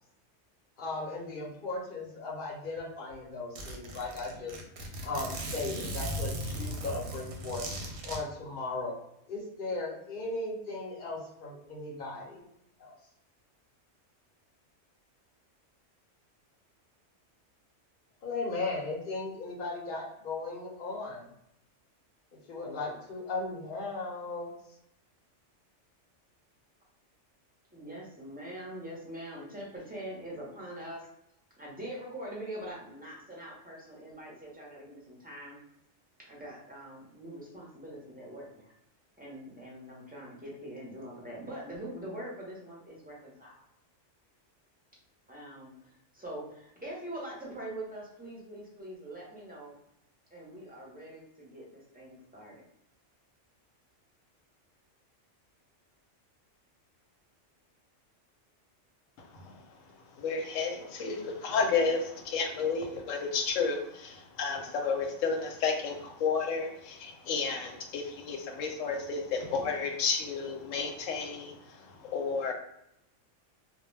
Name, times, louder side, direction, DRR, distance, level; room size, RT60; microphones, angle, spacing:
voice 1, 0.8-4.5 5.0-7.6 8.0-8.9 9.3-12.4 12.8-12.9 18.2-21.2 22.5-24.5, left 3 dB, 50° left, -3 dB, 0.8 m, -37 dB
Zipper (clothing), 2.8-2.9 3.1-3.2 3.6-8.2, right 1 dB, 65° right, 0.8 m, -37 dB
voice 2, 27.7-31.1 31.6-35.6 36.3-38.7 39.2-43.6 45.3-49.7 50.3-52.6, right 1 dB, 10° right, -4 dB, 0.5 m, -43 dB
voice 3, 60.2-72.5, left 5 dB, 90° left, 4 dB, 1.0 m, -32 dB
2.2 x 2.1 x 3.1 m, 0.79 s
omnidirectional pair, 1.3 m